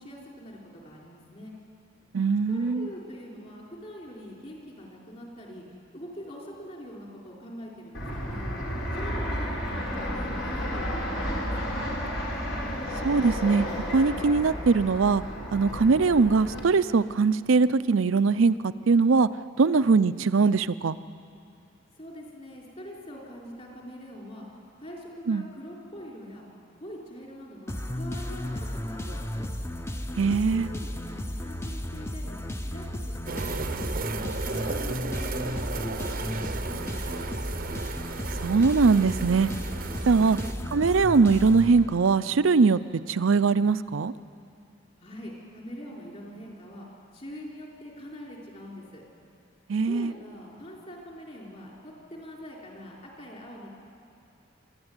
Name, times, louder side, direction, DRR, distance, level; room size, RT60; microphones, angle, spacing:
voice 1, 0.0-1.6 2.5-5.6 5.9-8.5 8.9-11.9 19.7-20.0 22.0-26.5 26.7-29.5 30.3-32.4 32.7-37.3 40.2-40.5 45.0-46.9 47.1-49.0 49.7-53.7, equal, 35° left, -2 dB, 4.8 m, -44 dB
voice 2, 2.1-2.9 13.0-15.2 15.5-19.3 19.6-21.0 25.3-25.5 30.2-30.7 38.4-39.5 40.1-40.4 40.7-42.8 43.1-44.1 49.7-50.1, right 4 dB, 85° right, 15 dB, 0.5 m, -21 dB
Fixed-wing aircraft airplane, 7.9-16.6, equal, 70° left, 4.3 m, -32 dB
sound 1, 27.7-42.3, left 1 dB, 15° left, 0.8 m, -34 dB
sound 2, 33.3-40.5, right 4 dB, 45° right, 0.7 m, -35 dB
26.0 x 13.0 x 9.7 m, 2.6 s
head